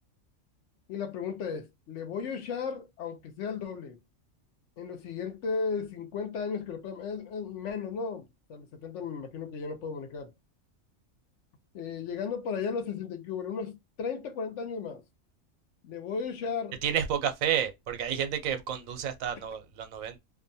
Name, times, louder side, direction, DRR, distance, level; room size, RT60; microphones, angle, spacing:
voice 1, 0.9-4.0 4.8-10.3 11.7-15.0 15.8-16.8, left 5 dB, 65° left, 0.9 m, -35 dB
voice 2, 16.8-20.2, right 9 dB, 80° right, 1.0 m, -30 dB
2.6 x 2.2 x 2.6 m
omnidirectional pair, 1.4 m